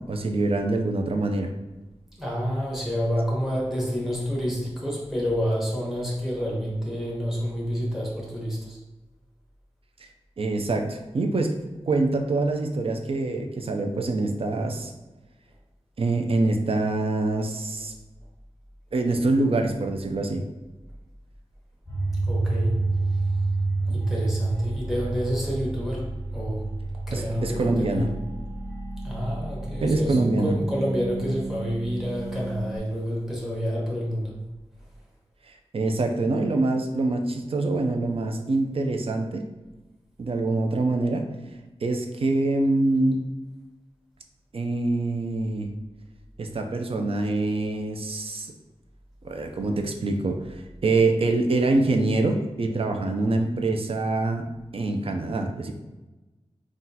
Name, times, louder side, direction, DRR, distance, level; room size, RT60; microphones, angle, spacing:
voice 1, 0.1-1.5 10.4-11.6 11.8-14.9 16.0-17.9 18.9-20.4 27.1-28.1 29.8-30.5 35.7-39.4 40.2-41.2 41.8-43.2 44.5-45.7 46.4-48.5 49.2-54.5 54.7-55.7, right 2 dB, 55° right, 4 dB, 0.4 m, -25 dB
voice 2, 2.2-8.8 22.2-22.8 23.1-23.3 23.8-26.7 27.1-28.1 29.0-34.4, equal, 5° right, -4 dB, 1.1 m, -28 dB
sound 1, 21.9-32.8, right 2 dB, 30° left, 0.8 m, -29 dB
3.8 x 2.4 x 2.7 m, 1.1 s
wide cardioid pair, 80°, 11 cm